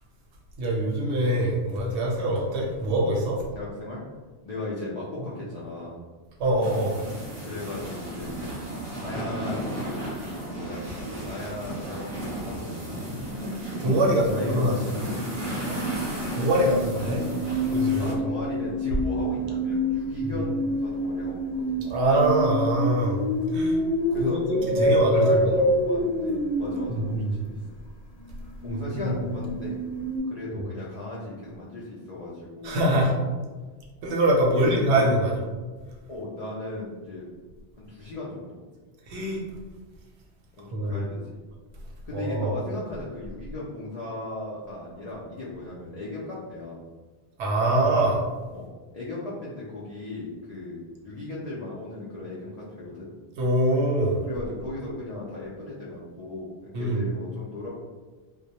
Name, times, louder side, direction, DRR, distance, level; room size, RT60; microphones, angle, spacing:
voice 1, 0.6-3.4 6.4-7.0 13.8-14.7 16.3-17.2 17.7-18.1 20.2-20.4 21.8-23.2 23.5-23.8 24.2-25.5 26.9-27.3 28.7-29.2 30.5-30.7 32.6-33.1 34.0-35.5 39.1-39.4 40.7-41.0 42.1-42.6 47.4-48.2 53.4-54.3 56.7-57.0, right 1 dB, 70° right, -2 dB, 0.8 m, -24 dB
voice 2, 3.5-4.0 4.4-6.0 7.4-8.4 9.0-10.0 10.3-13.0 13.9-15.8 18.0-21.8 23.5-23.6 24.1-24.4 24.7-27.6 28.6-29.7 30.3-32.8 33.1-33.3 34.5-34.9 36.1-37.3 37.8-38.6 40.6-41.4 42.0-46.8 48.5-48.7 48.9-53.1 54.3-57.7, left 2 dB, 70° left, -7 dB, 0.3 m, -36 dB
sound 1, 6.6-18.1, right 1 dB, 30° right, 0.7 m, -34 dB
sound 2, 15.6-27.2 28.2-30.2, equal, 85° left, 1.1 m, -27 dB
2.2 x 2.0 x 2.7 m, 1.3 s
omnidirectional pair, 1.2 m